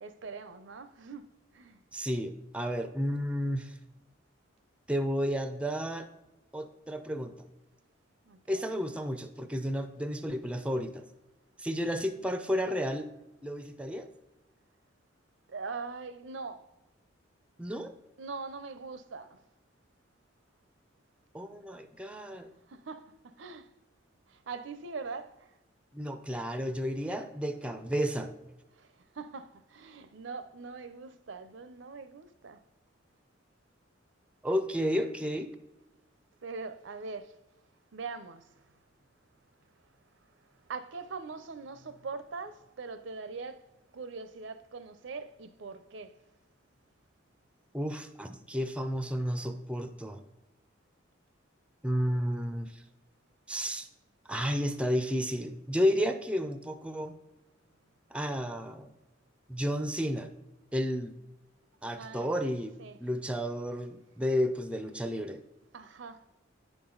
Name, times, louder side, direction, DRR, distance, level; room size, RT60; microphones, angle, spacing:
voice 1, 0.0-1.8 8.3-8.7 15.5-16.7 18.2-19.4 22.3-22.4 22.7-23.7 24.3-25.5 28.7-32.6 36.4-37.4 37.9-38.8 40.3-43.7 43.9-46.2 62.0-62.3 62.8-63.0 65.7-66.3, right 4 dB, 70° right, 0.5 m, -42 dB
voice 2, 1.9-3.8 4.9-6.1 6.5-7.3 8.5-11.0 11.6-13.1 13.4-14.1 17.6-17.9 21.3-22.5 25.9-28.3 34.4-35.5 47.7-50.2 51.8-52.8 53.5-53.9 54.3-57.2 58.1-58.9 59.5-60.3 60.7-61.2 61.8-65.4, equal, 5° right, 0.4 m, -32 dB
9.1 x 6.1 x 3.8 m
head